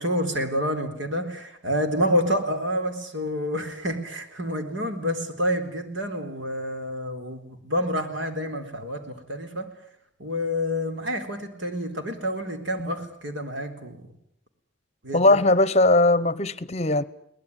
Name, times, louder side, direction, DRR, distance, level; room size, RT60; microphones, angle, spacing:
voice 1, 0.0-9.7 10.2-14.1 15.0-15.4, equal, 75° right, 4.0 m, -28 dB
voice 2, 15.1-17.0, left 2 dB, 35° left, 0.9 m, -19 dB
23.5 x 19.0 x 9.7 m
head